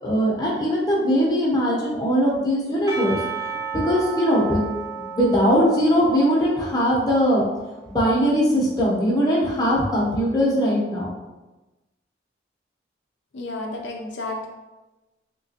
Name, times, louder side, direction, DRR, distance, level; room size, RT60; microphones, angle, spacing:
voice 1, 0.0-3.2 3.5-4.6 5.0-7.4 7.9-11.1, equal, 20° left, -5 dB, 0.7 m, -20 dB
Percussion / Church bell, 2.9-7.9, right 5 dB, 20° right, 0.4 m, -34 dB
voice 2, 13.3-14.5, left 2 dB, 75° left, 0 dB, 0.5 m, -31 dB
3.4 x 2.9 x 2.8 m, 1.1 s
head